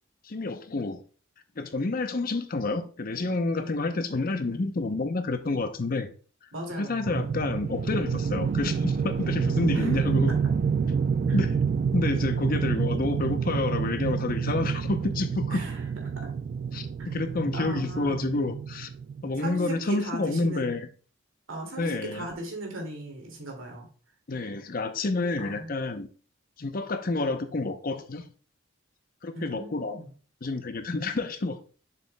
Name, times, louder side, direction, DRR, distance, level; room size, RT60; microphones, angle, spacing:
voice 1, 0.2-1.0 1.6-6.1 6.8-10.3 11.3-11.6 11.9-15.6 16.7-18.9 19.2-20.9 21.8-22.3 24.3-26.1 26.6-28.2 29.2-30.0 30.4-31.6, left 3 dB, 45° left, 0.7 m, -29 dB
voice 2, 6.5-7.4 9.7-10.0 11.3-11.4 15.5-15.9 17.0-17.1 17.5-18.1 19.4-20.7 21.5-23.9 25.4-25.7 29.3-30.1, right 1 dB, 85° right, 2.3 m, -38 dB
sound 1, 7.1-19.3, right 6 dB, 45° right, 0.3 m, -28 dB
7.0 x 6.8 x 2.2 m
head